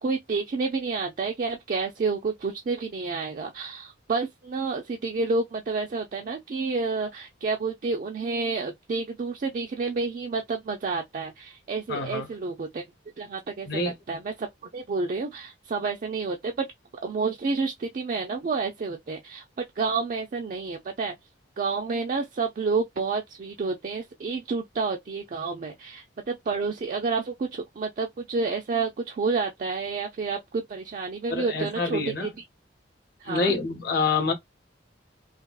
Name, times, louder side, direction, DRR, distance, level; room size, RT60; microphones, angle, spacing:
voice 1, 0.0-12.8 13.2-14.5 14.7-16.7 17.0-21.2 21.6-32.3 33.2-33.5, right 4 dB, 45° right, 0.4 m, -29 dB
voice 2, 11.9-12.3 13.7-13.9 31.3-32.3 33.3-34.3, left 4 dB, 55° left, 0.8 m, -27 dB
3.3 x 2.3 x 2.3 m
head